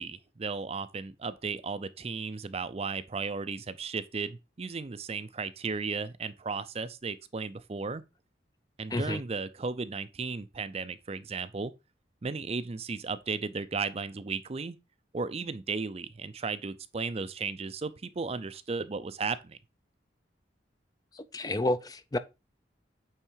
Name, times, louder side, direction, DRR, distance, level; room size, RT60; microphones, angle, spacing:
voice 1, 0.0-8.0 8.8-11.7 12.2-14.8 15.1-19.6, right 4 dB, 35° right, 0.5 m, -35 dB
voice 2, 8.9-9.2 21.1-22.2, left 1 dB, 20° left, 0.5 m, -30 dB
8.9 x 3.7 x 4.5 m
head